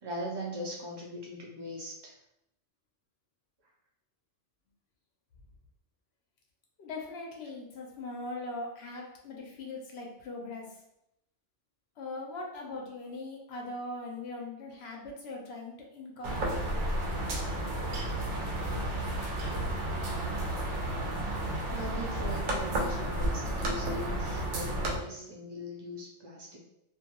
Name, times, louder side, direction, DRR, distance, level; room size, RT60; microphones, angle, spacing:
voice 1, 0.0-2.2 21.7-26.6, equal, 30° right, -2 dB, 0.5 m, -40 dB
voice 2, 6.8-10.8 12.0-16.7 18.7-19.0, left 2 dB, 65° left, 0 dB, 0.9 m, -41 dB
sound 1, 16.2-25.0, right 1 dB, 85° right, 0.9 m, -32 dB
2.5 x 2.2 x 2.8 m, 0.81 s
omnidirectional pair, 1.2 m